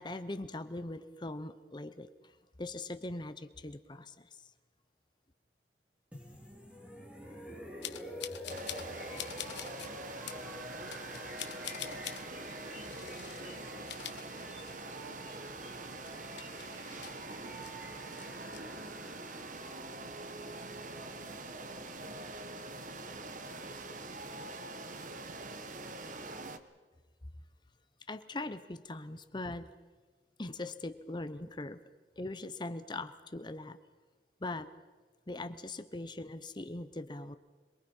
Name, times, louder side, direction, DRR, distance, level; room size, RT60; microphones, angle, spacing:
voice 1, 0.0-4.5 28.1-29.7 30.4-31.8 32.2-33.8 34.4-34.7 35.3-37.4, left 2 dB, 25° left, 11 dB, 0.9 m, -41 dB
sound 1, 6.1-22.0, left 1 dB, 5° right, 3.5 m, -49 dB
sound 2, 7.8-8.9 9.2-9.9 10.3-10.4 10.9-12.2 12.8-13.5 13.8-15.0 15.3-15.4 15.8-17.7 18.1-18.6, left 11 dB, 90° left, 1.1 m, -44 dB
sound 3, 8.5-26.6, right 2 dB, 45° right, 1.2 m, -44 dB
voice 2, 10.6-11.2 11.8-12.6 13.4-14.4 14.8-16.5 19.3-20.2 20.7-21.7 24.0-25.6, right 1 dB, 65° right, 4 dB, 2.8 m, -60 dB
27.0 x 22.5 x 5.5 m, 1.4 s
head